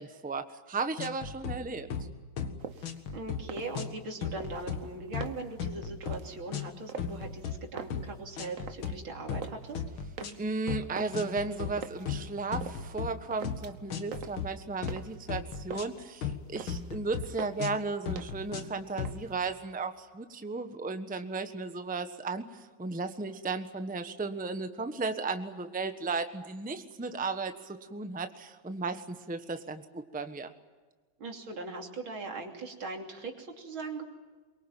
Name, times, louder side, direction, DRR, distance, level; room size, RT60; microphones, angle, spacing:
voice 1, 0.0-1.9 10.4-30.5, right 3 dB, 5° right, 8 dB, 1.0 m, -35 dB
sound 1, 1.0-1.6 1.9-2.1 2.4-2.6 2.8-3.4 3.8-4.0 4.2-4.9 5.1-5.3 5.6-6.2 6.5-6.7 7.0-7.6 7.9-8.1 8.4-9.0 9.3-9.5 9.8-10.4 10.7-10.9 11.1-11.8 12.1-13.1 13.4-13.6 13.9-14.5 14.8-15.0 15.3-16.4 16.7-17.3 17.6-17.8 18.1-18.7 19.0-19.1, left 7 dB, 90° left, 2.4 m, -36 dB
sound 2, 2.6-3.0 3.4-4.1 4.4-5.6 6.0-6.4 6.9-7.4 7.7-9.0 9.2-9.7 10.2-12.1 12.6-13.0 13.3-13.9 14.1-15.3 15.5-16.1 16.4-17.0 17.4-17.8 18.2-18.6 18.9-19.5, right 6 dB, 45° right, 1.4 m, -44 dB
voice 2, 2.7-9.8 31.2-34.0, right 3 dB, 85° right, 3 dB, 3.8 m, -40 dB
23.5 x 23.0 x 9.1 m, 1.4 s
omnidirectional pair, 2.2 m